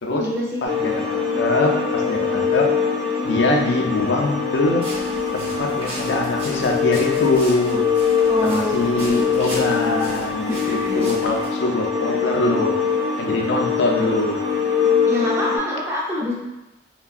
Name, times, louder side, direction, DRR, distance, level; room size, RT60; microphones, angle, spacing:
voice 1, 0.1-0.6 8.3-9.5 10.5-11.2 15.0-16.3, left 1 dB, 15° right, -5 dB, 0.6 m, -27 dB
voice 2, 0.6-2.7 3.2-4.9 5.3-7.9 8.4-12.7 13.2-14.4, left 2 dB, 80° left, 1 dB, 0.4 m, -23 dB
sound 1, 0.6-15.6, left 6 dB, 70° right, 0.6 m, -23 dB
sound 2, 4.8-11.5, equal, 35° right, 1.0 m, -37 dB
3.3 x 2.2 x 2.4 m, 1.0 s
head